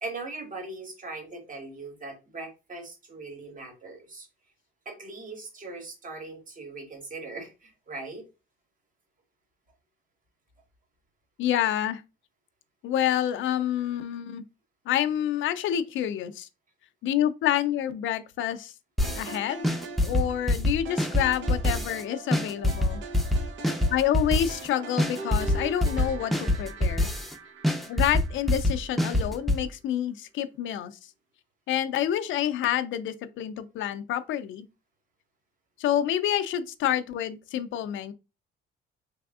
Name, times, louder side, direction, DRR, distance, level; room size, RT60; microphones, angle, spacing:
voice 1, 0.0-4.3 4.8-8.2, right 3 dB, 40° right, 1.3 m, -40 dB
voice 2, 11.4-12.0 12.8-14.4 14.9-16.5 17.0-18.7 19.1-19.7 20.0-23.0 23.9-27.1 27.9-31.0 31.7-34.7 35.8-38.1, left 11 dB, 75° left, 0.5 m, -28 dB
sound 1, 19.0-19.3 19.6-22.0 22.3-24.7 25.0-27.3 27.6-29.6, left 1 dB, ahead, 0.6 m, -25 dB
sound 2, 19.0-29.3, right 4 dB, 70° right, 0.8 m, -42 dB
3.4 x 3.3 x 2.3 m
cardioid pair, 90°, 20 cm